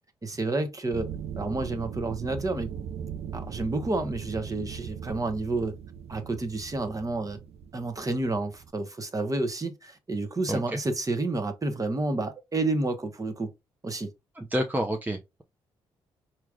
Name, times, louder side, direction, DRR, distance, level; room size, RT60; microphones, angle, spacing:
voice 1, 0.2-1.1 1.4-2.7 3.3-5.8 6.1-7.4 7.7-13.5 13.8-14.1, right 2 dB, 30° right, 1.2 m, -30 dB
sound 1, 0.9-8.7, right 7 dB, 65° right, 0.5 m, -39 dB
voice 2, 10.5-10.8 14.4-15.4, equal, 15° right, 0.8 m, -29 dB
4.7 x 3.0 x 2.5 m
hypercardioid pair, 45°, 11 cm